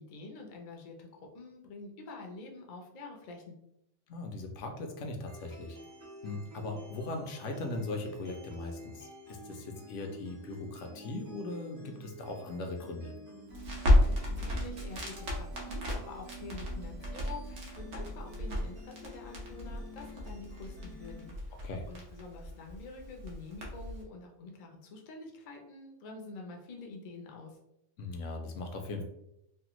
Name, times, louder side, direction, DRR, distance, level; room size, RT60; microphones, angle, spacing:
voice 1, 0.0-3.6 14.1-27.6, left 3 dB, 50° left, 1 dB, 0.5 m, -47 dB
voice 2, 4.1-5.8 6.2-13.1 21.6-21.8 28.0-29.0, left 2 dB, 75° left, 4 dB, 0.9 m, -39 dB
sound 1, 5.3-21.3, right 2 dB, 60° right, 1.2 m, -49 dB
Crackle, 13.5-24.0, left 1 dB, 80° right, 1.2 m, -33 dB
3.3 x 2.1 x 2.9 m, 0.80 s
omnidirectional pair, 1.3 m